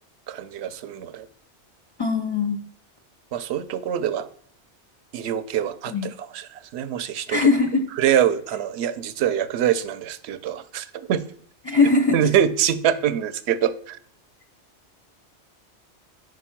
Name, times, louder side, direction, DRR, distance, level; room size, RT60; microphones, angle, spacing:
voice 1, 0.3-1.3 3.3-4.3 5.1-7.5 8.0-11.2 12.1-14.0, right 9 dB, 70° right, 14 dB, 0.8 m, -24 dB
voice 2, 2.0-2.6 5.9-6.1 7.3-7.8 11.6-12.3, left 4 dB, 35° left, 6 dB, 0.4 m, -20 dB
5.2 x 5.2 x 5.7 m, 0.62 s
omnidirectional pair, 1.2 m